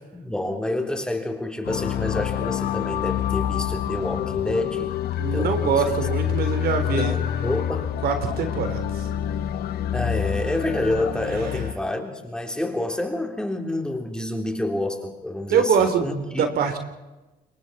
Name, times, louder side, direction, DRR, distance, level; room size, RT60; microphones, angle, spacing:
voice 1, 0.2-4.9 5.3-5.8 6.9-7.9 9.9-16.5, left 1 dB, 5° left, 3 dB, 3.6 m, -28 dB
sound 1, 1.6-11.7, left 10 dB, 70° left, 1.3 m, -27 dB
voice 2, 5.2-7.1 8.0-9.1 15.5-16.8, right 6 dB, 65° right, 7 dB, 3.5 m, -24 dB
28.0 x 22.5 x 4.3 m, 1.1 s
cardioid pair, 110°, 17 cm